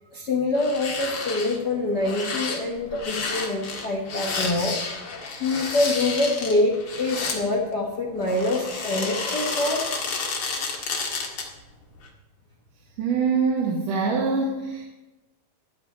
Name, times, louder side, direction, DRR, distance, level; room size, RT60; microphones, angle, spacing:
voice 1, 0.1-4.8 5.4-9.9, left 2 dB, 65° left, -1 dB, 1.0 m, -25 dB
sound 1, 0.5-1.6 2.0-7.4 8.2-11.6 11.9-12.1, left 4 dB, 45° left, 2.1 m, -31 dB
voice 2, 13.0-14.8, right 4 dB, 65° right, -2 dB, 2.9 m, -24 dB
13.5 x 5.7 x 9.2 m, 1.1 s
omnidirectional pair, 4.2 m